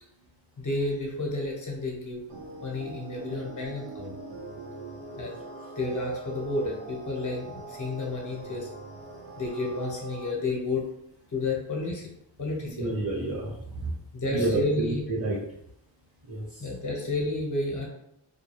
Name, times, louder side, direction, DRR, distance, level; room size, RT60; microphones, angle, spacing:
voice 1, 0.6-4.1 5.2-5.4 5.8-8.7 9.4-10.8 11.3-12.1 12.4-12.9 14.1-15.0 16.6-17.9, left 2 dB, 40° left, 0 dB, 1.0 m, -31 dB
sound 1, 2.3-10.3, right 3 dB, 65° right, 0.8 m, -41 dB
voice 2, 12.8-13.5 13.7-13.9 14.3-15.4 16.3-16.7, right 2 dB, 45° right, -6 dB, 1.1 m, -29 dB
2.4 x 2.2 x 3.1 m, 0.77 s
cardioid pair, 60°, 46 cm